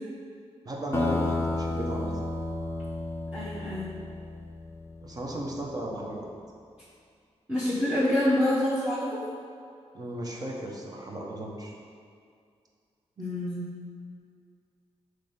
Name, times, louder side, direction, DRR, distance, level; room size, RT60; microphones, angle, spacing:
voice 1, 0.6-2.2 5.0-6.3 9.9-11.7, right 1 dB, 35° right, -1 dB, 0.8 m, -35 dB
sound 1, 0.9-5.2, left 2 dB, 25° left, 0.5 m, -32 dB
voice 2, 3.3-3.9 7.5-9.2 13.2-13.6, left 1 dB, 10° right, -11 dB, 1.0 m, -26 dB
6.0 x 3.2 x 5.3 m, 2.3 s
wide cardioid pair, 150°, 11 cm